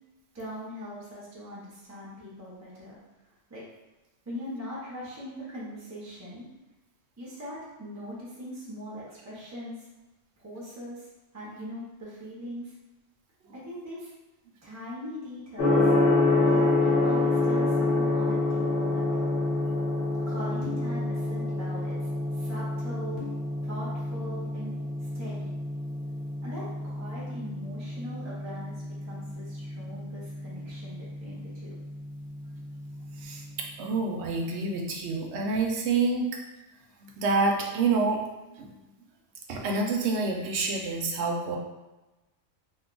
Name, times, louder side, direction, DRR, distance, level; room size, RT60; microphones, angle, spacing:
voice 1, 0.3-2.9 3.5-3.6 4.3-6.4 7.2-9.9 10.4-11.1 11.3-12.7 13.5-14.1 14.6-15.9 16.4-19.3 20.3-23.2 23.6-25.5 26.4-31.7, equal, 15° right, -7 dB, 0.6 m, -41 dB
Gong, 15.6-33.5, left 2 dB, 70° left, 1.1 m, -28 dB
voice 2, 33.2-36.2 37.0-38.2 38.6-38.7 39.5-41.6, right 3 dB, 70° right, 1 dB, 0.8 m, -27 dB
2.7 x 2.2 x 3.7 m, 1.1 s
omnidirectional pair, 1.3 m